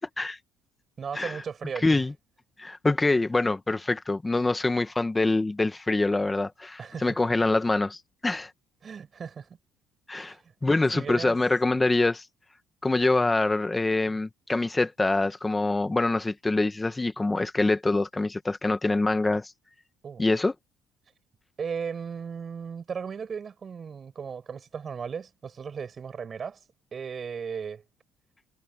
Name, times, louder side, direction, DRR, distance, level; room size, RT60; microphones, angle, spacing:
voice 1, 1.0-2.0 6.8-7.2 8.8-9.6 10.2-10.5 10.9-11.4 20.0-20.2 21.6-26.6 26.9-27.8, right 6 dB, 35° right, 6.7 m, -36 dB
voice 2, 1.8-2.1 2.6-8.0 8.2-8.5 10.1-10.3 10.6-12.2 12.8-19.5 20.2-20.5, left 2 dB, 15° left, 1.5 m, -25 dB
cardioid pair, 130°, 0 cm